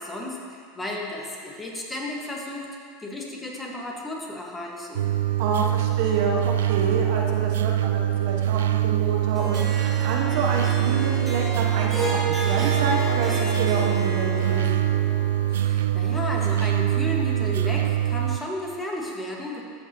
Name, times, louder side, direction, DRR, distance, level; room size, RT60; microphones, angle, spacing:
voice 1, 0.0-2.7 3.0-5.1 15.5-19.6, left 1 dB, 15° left, -2 dB, 1.7 m, -33 dB
sound 1, 5.0-18.4, right 12 dB, 80° right, 0.3 m, -24 dB
voice 2, 5.4-14.7, right 4 dB, 65° right, 0 dB, 1.0 m, -28 dB
Harp, 9.3-15.7, right 1 dB, 10° right, 2.4 m, -32 dB
13.0 x 6.4 x 3.1 m, 2.2 s
hypercardioid pair, 90°, 0 cm